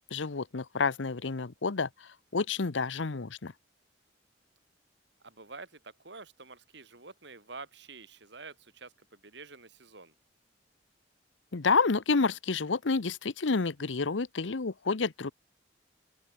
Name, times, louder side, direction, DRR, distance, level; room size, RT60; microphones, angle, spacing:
voice 1, 0.1-1.9 2.3-3.5 11.5-15.3, left 4 dB, 80° left, 0.9 m, -29 dB
voice 2, 5.2-10.1, right 4 dB, 65° right, 4.4 m, -48 dB
open air
head